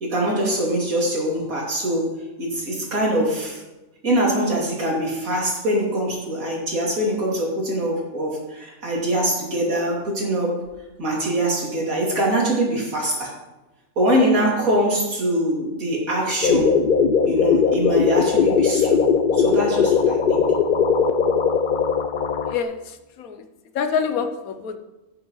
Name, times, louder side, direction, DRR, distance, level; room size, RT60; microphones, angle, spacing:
voice 1, 0.0-2.1 2.4-3.6 4.0-10.6 11.0-13.3 14.0-16.8 17.3-19.0 19.3-20.4, right 1 dB, 80° right, -3 dB, 3.1 m, -23 dB
sound 1, 16.4-22.6, left 6 dB, 50° left, 0.6 m, -19 dB
voice 2, 22.4-23.4 23.7-24.8, left 6 dB, 90° left, 8 dB, 1.3 m, -26 dB
16.5 x 7.3 x 3.1 m, 1.1 s
omnidirectional pair, 1.4 m